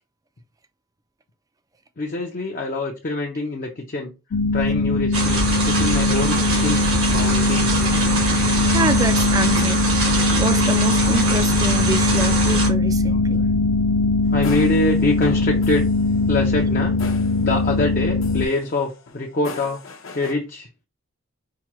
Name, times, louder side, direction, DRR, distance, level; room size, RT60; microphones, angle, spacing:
voice 1, 2.0-4.1 4.5-6.9 7.1-7.9 13.1-13.5 14.3-15.8 16.3-17.0 17.4-19.8 20.1-20.7, left 2 dB, 40° left, 0.6 m, -25 dB
sound 1, 4.3-18.5, left 3 dB, 85° left, 0.4 m, -20 dB
sound 2, 5.1-12.7, right 2 dB, 80° right, 1.7 m, -23 dB
voice 2, 8.7-9.9 10.4-13.5, right 2 dB, 20° right, 0.3 m, -26 dB
sound 3, 14.3-17.9 18.2-20.3, left 4 dB, 70° left, 0.9 m, -40 dB
4.7 x 2.2 x 3.0 m
head